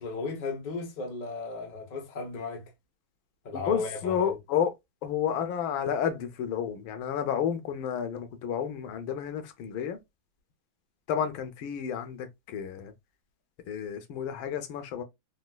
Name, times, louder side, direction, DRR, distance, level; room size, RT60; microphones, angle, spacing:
voice 1, 0.0-2.7 3.4-4.4, left 3 dB, 40° left, 0.6 m, -35 dB
voice 2, 3.5-4.7 5.0-10.0 11.1-12.9 13.7-15.0, left 8 dB, 90° left, 1.5 m, -31 dB
4.1 x 2.2 x 2.2 m
omnidirectional pair, 2.2 m